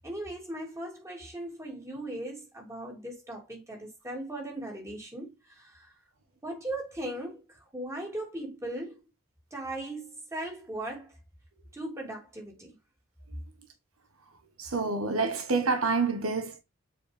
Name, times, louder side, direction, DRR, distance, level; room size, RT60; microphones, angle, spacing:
voice 1, 0.0-5.9 6.4-9.0 9.5-11.1 11.7-12.7, right 1 dB, 15° right, 3.1 m, -38 dB
voice 2, 14.6-16.6, right 4 dB, 80° right, 1.4 m, -27 dB
7.6 x 4.9 x 3.5 m
head